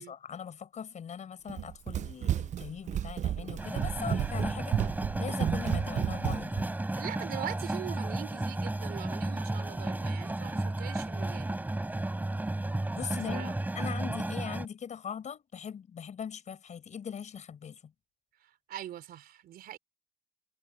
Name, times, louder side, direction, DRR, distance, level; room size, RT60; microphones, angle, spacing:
voice 1, 0.0-4.8 5.2-6.8 12.9-17.8, left 7 dB, 45° left, 5.0 m, -40 dB
Run, 1.5-6.7, right 10 dB, 45° right, 0.6 m, -32 dB
sound 1, 3.6-14.7, right 2 dB, 10° right, 4.0 m, -33 dB
voice 2, 6.9-11.6 13.3-13.5 18.4-19.8, right 12 dB, 65° right, 3.7 m, -42 dB
cardioid pair, 110°, 17 cm